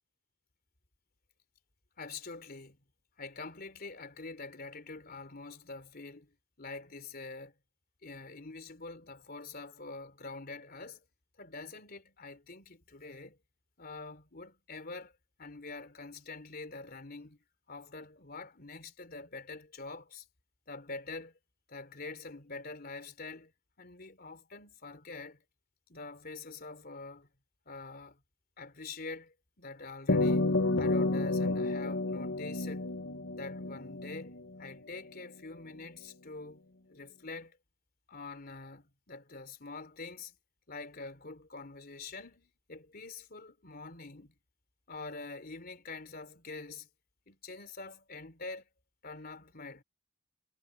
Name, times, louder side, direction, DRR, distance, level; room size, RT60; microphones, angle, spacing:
voice 1, 2.0-2.8 3.2-7.5 8.0-11.0 11.4-13.4 13.8-15.1 15.4-17.4 17.7-20.3 20.7-21.4 21.7-23.5 23.8-25.4 25.9-27.3 27.7-28.2 28.6-32.9 33.3-36.6 36.9-37.6 38.1-40.4 40.7-44.3 44.9-46.9 47.3-48.7 49.0-49.8, left 3 dB, 50° left, 3.5 m, -45 dB
sound 1, 30.1-34.7, left 2 dB, 90° left, 1.6 m, -30 dB
head